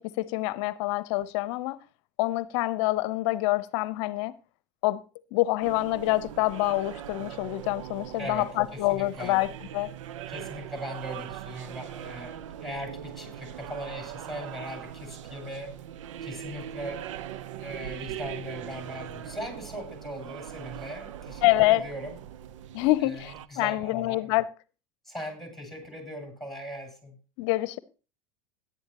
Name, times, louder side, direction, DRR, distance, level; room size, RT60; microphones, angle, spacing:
voice 1, 0.2-1.8 2.2-4.3 4.8-5.0 5.3-9.9 21.4-21.8 22.7-24.5 27.4-27.8, left 18 dB, 65° left, 0.8 m, -26 dB
sound 1, 5.6-23.5, right 11 dB, 75° right, 0.7 m, -41 dB
voice 2, 8.2-9.4 10.3-15.7 16.2-17.0 17.6-22.2 23.1-24.3 25.0-27.2, equal, ahead, 7.9 m, -39 dB
17.0 x 11.0 x 3.0 m
hypercardioid pair, 90°, 16 cm